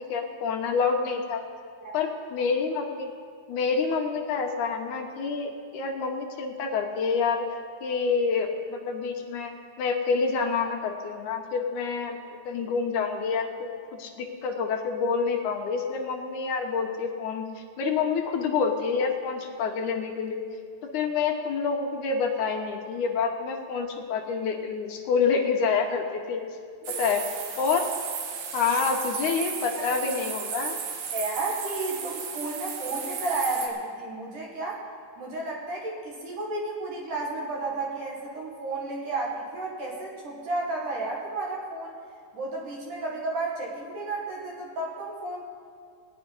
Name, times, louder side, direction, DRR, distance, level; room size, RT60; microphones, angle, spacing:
voice 1, 0.1-1.4 1.9-3.1 3.5-7.5 7.8-9.5 9.8-17.5 17.8-20.4 20.9-26.4 27.0-27.2 27.6-27.9 28.5-30.8, left 5 dB, 70° left, 3 dB, 2.2 m, -27 dB
sound 1, 26.8-33.7, right 6 dB, 85° right, 3.4 m, -34 dB
voice 2, 31.1-34.8 35.2-42.0 42.3-45.4, right 2 dB, 60° right, -3 dB, 3.4 m, -32 dB
18.5 x 6.2 x 9.7 m, 2.2 s
omnidirectional pair, 4.4 m